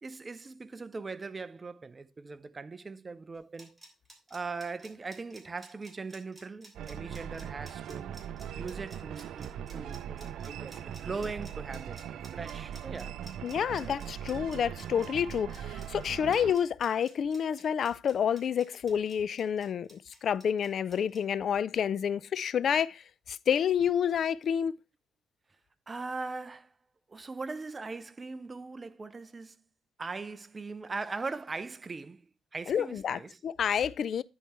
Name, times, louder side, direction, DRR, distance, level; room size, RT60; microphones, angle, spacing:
voice 1, 0.0-3.8 4.3-8.2 8.6-13.2 25.9-26.7 27.1-29.6 30.0-32.3 32.5-33.4, right 4 dB, 30° right, 0.6 m, -40 dB
sound 1, 3.3-21.2, right 1 dB, 10° right, 3.1 m, -54 dB
Methyl Swamp, 6.7-16.6, right 9 dB, 75° right, 0.5 m, -40 dB
voice 2, 13.4-24.7 32.7-34.2, left 8 dB, 60° left, 0.4 m, -29 dB
10.0 x 4.7 x 4.3 m
cardioid pair, 90°, 0 cm